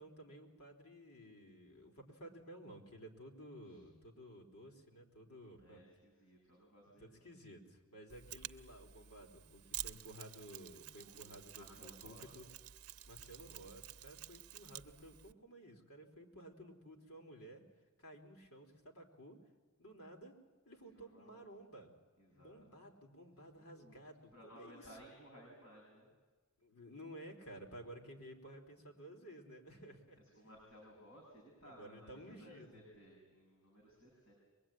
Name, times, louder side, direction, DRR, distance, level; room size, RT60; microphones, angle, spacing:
voice 1, 0.0-5.8 7.0-12.5 13.1-17.6 18.0-19.4 19.8-20.3 20.7-21.9 22.3-25.0 26.6-30.5 31.6-32.7, right 1 dB, 80° left, 3 dB, 4.0 m, -54 dB
voice 2, 5.6-7.3 10.9-12.2 20.8-21.4 22.2-22.9 23.5-23.9 24.3-26.1 30.2-34.3, equal, 60° left, -2 dB, 6.6 m, -59 dB
Mechanisms, 8.1-15.3, right 13 dB, 75° right, 0.7 m, -50 dB
23.0 x 22.0 x 9.0 m, 1.3 s
head